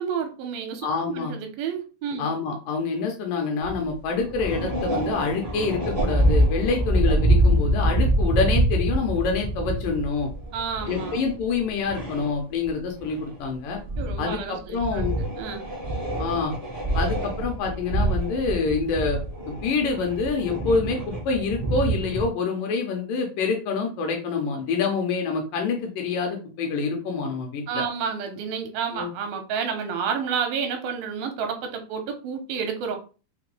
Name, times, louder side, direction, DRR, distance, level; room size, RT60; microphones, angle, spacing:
voice 1, 0.0-2.3 10.5-11.2 14.0-15.7 27.7-33.0, right 6 dB, 85° right, 5 dB, 2.4 m, -30 dB
voice 2, 0.8-1.3 2.2-10.3 10.9-13.8 14.2-15.2 16.2-16.5 16.9-19.2 19.5-27.8 28.9-29.1, left 4 dB, 75° left, 2 dB, 2.2 m, -26 dB
sound 1, 3.6-3.9 4.2-12.7 13.0-13.4 13.8-14.4 14.8-22.3, right 1 dB, 55° right, 0.6 m, -25 dB
5.9 x 2.2 x 3.1 m, 0.35 s
omnidirectional pair, 4.3 m